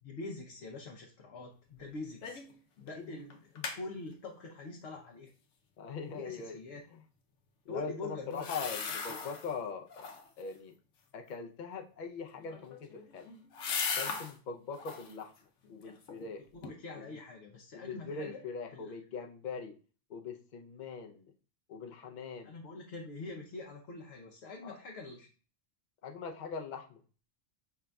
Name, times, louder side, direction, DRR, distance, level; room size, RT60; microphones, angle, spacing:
voice 1, 0.0-2.4 2.8-5.3 6.1-6.8 7.7-9.3 16.5-18.4 18.7-18.9 22.4-25.3, left 3 dB, 65° left, 0 dB, 1.0 m, -45 dB
sound 1, 2.2-2.6 2.9-3.0 3.3-3.8 8.3-9.5 9.9-10.4 12.4-14.3 14.7-15.2 15.6-16.3 16.6-16.7, left 5 dB, 90° left, 1.0 m, -38 dB
voice 2, 5.8-6.6 6.9-7.0 7.7-10.1 10.4-10.7 11.1-13.3 14.0-15.3 15.7-16.5 16.9-17.2 17.7-19.8 20.1-21.3 21.7-22.6 24.6-24.8 26.0-27.0, left 5 dB, 50° left, 3 dB, 0.7 m, -42 dB
5.7 x 3.6 x 2.2 m, 0.38 s
omnidirectional pair, 1.2 m